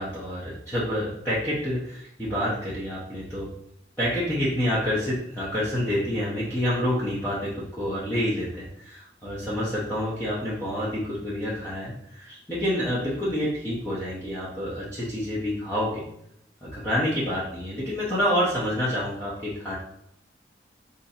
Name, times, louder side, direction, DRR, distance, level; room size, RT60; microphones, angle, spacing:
voice 1, 0.0-3.5 4.0-16.0 16.6-19.7, equal, 10° left, -10 dB, 0.7 m, -28 dB
2.7 x 2.6 x 4.0 m, 0.75 s
head